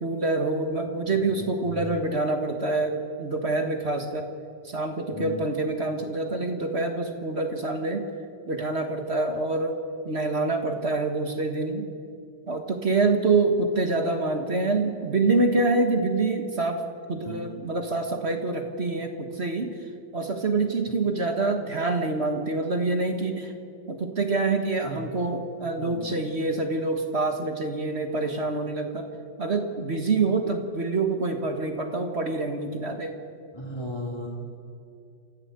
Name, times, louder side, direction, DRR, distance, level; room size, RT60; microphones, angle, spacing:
voice 1, 0.0-4.3 4.6-8.0 8.5-9.8 10.0-11.9 12.5-16.8 17.1-19.7 20.1-23.5 23.9-29.1 29.4-33.1, right 3 dB, 35° right, 5 dB, 1.7 m, -26 dB
voice 2, 1.0-1.7 5.1-5.5 17.2-17.4 24.8-25.0 25.8-26.1 33.5-34.3, left 1 dB, 10° left, -5 dB, 2.6 m, -36 dB
28.0 x 14.0 x 8.1 m, 2.5 s
omnidirectional pair, 2.1 m